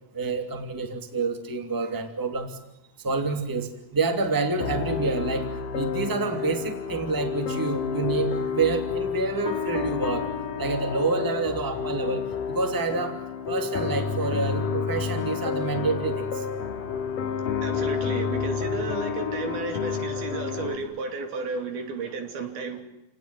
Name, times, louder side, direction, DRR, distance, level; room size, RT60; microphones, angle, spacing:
voice 1, 0.1-2.6 3.0-10.3 10.6-13.2 13.5-16.4, right 3 dB, 5° right, 6 dB, 2.2 m, -28 dB
sound 1, 4.6-20.8, left 6 dB, 60° left, 3.6 m, -30 dB
voice 2, 17.6-22.8, right 4 dB, 75° right, 5 dB, 4.9 m, -33 dB
29.5 x 18.5 x 9.2 m, 0.92 s
omnidirectional pair, 4.4 m